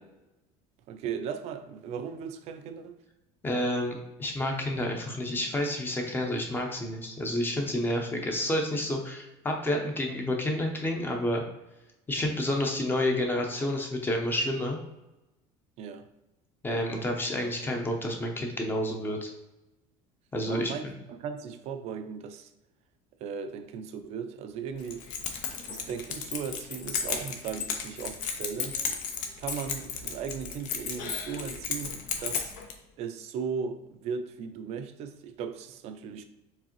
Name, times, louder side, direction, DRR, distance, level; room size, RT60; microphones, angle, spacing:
voice 1, 0.9-3.0 15.8-16.1 20.5-22.5 23.2-25.1 25.7-28.8 29.4-32.5 33.0-36.2, right 6 dB, 50° right, 0.4 m, -37 dB
voice 2, 3.4-11.4 12.1-14.8 16.6-19.3 20.3-20.9, left 1 dB, 15° left, 0.6 m, -29 dB
Keys jangling, 24.8-32.7, left 6 dB, 65° left, 0.7 m, -34 dB
4.6 x 3.4 x 3.0 m
cardioid pair, 150°, 14 cm